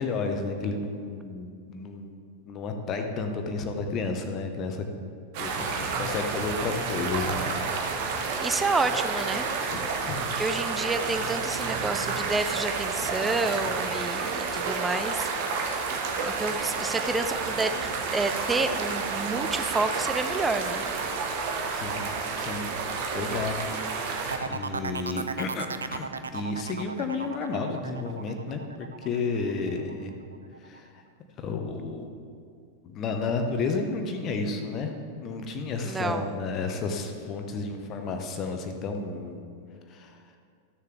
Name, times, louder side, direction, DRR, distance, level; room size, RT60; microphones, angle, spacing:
voice 1, 0.0-2.1 2.5-4.9 5.4-7.4 8.0-8.4 9.7-9.8 10.0-10.4 21.7-22.1 22.4-22.7 23.1-24.2 24.5-30.1 30.6-31.0 31.4-32.1 32.8-39.4 39.9-40.2, left 4 dB, 35° left, 5 dB, 1.1 m, -32 dB
sound 1, 5.3-24.4, right 4 dB, 50° right, 1.2 m, -30 dB
voice 2, 8.4-9.5 10.4-15.3 16.2-20.8 35.8-36.4, right 3 dB, 10° right, 8 dB, 0.5 m, -29 dB
its a keeper, 24.3-29.9 30.3-30.8, right 5 dB, 75° right, 0.4 m, -36 dB
14.0 x 6.7 x 3.4 m, 2.3 s
figure-of-eight pair, 90°, 0 cm